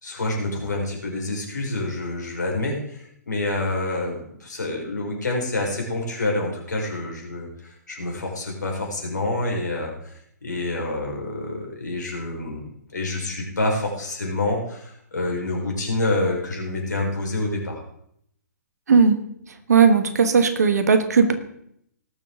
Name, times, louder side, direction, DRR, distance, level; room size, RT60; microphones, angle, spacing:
voice 1, 0.0-17.8, left 2 dB, 70° left, 0 dB, 4.5 m, -27 dB
voice 2, 19.7-21.3, right 5 dB, 60° right, 9 dB, 1.5 m, -17 dB
19.0 x 7.2 x 3.7 m, 0.71 s
figure-of-eight pair, 125°, 10 cm